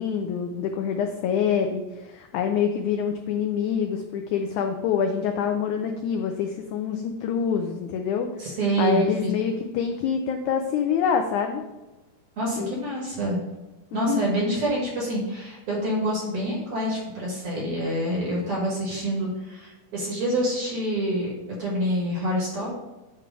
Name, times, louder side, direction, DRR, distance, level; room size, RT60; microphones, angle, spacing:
voice 1, 0.0-8.5 8.8-11.6 12.6-12.7 13.9-14.3, left 7 dB, 90° left, 5 dB, 1.7 m, -26 dB
voice 2, 8.4-9.3 12.4-13.4 13.9-21.3 21.6-22.7, right 1 dB, 50° right, -3 dB, 1.9 m, -27 dB
8.6 x 3.3 x 5.0 m, 1.1 s
omnidirectional pair, 4.0 m